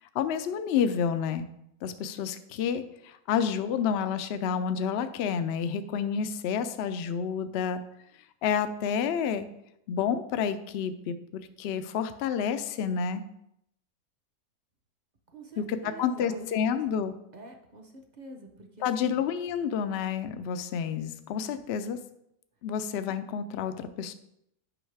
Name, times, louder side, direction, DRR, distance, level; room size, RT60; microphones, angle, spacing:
voice 1, 0.1-1.5 1.8-7.8 8.4-9.5 9.9-13.2 15.6-17.1 18.8-22.0 22.6-24.1, left 7 dB, 70° left, 10 dB, 0.6 m, -29 dB
voice 2, 15.3-16.9 17.3-19.2, right 1 dB, 40° right, 3 dB, 0.7 m, -46 dB
8.6 x 5.5 x 3.3 m, 0.78 s
omnidirectional pair, 1.6 m